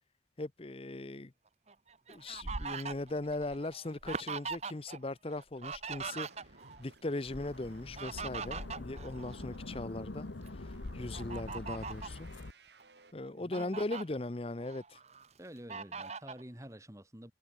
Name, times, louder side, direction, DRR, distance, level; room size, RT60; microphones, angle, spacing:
voice 1, 0.4-1.3 2.1-6.5 6.8-12.3 13.1-15.0, left 2 dB, 30° left, 0.7 m, -39 dB
Fowl, 1.7-5.0 5.3-6.8 7.7-9.8 10.3-10.5 11.1-12.2 12.8-12.9 13.3-14.0 14.6-15.3 15.7-16.4, right 5 dB, 35° right, 1.0 m, -41 dB
sound 1, 6.0-13.1, right 2 dB, 65° right, 4.1 m, -59 dB
sound 2, 7.3-12.5, left 2 dB, 80° left, 1.1 m, -44 dB
voice 2, 9.4-9.8 13.3-13.9 15.4-17.3, equal, 15° right, 2.7 m, -50 dB
head